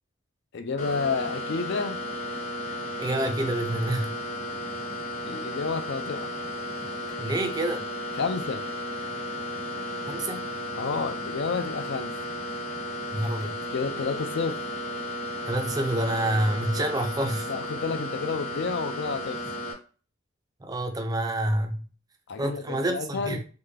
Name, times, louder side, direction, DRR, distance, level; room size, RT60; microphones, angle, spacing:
voice 1, 0.5-2.0 5.3-6.3 8.1-8.6 10.7-12.2 13.7-14.6 17.5-19.4 22.3-23.4, left 4 dB, 55° left, 0.4 m, -30 dB
sound 1, 0.8-19.7, left 1 dB, 35° left, 1.1 m, -34 dB
voice 2, 3.0-4.1 7.2-7.8 10.1-10.5 13.1-13.6 15.5-17.5 20.6-21.8 22.4-23.4, right 1 dB, 20° right, 0.4 m, -27 dB
3.6 x 2.2 x 3.2 m
head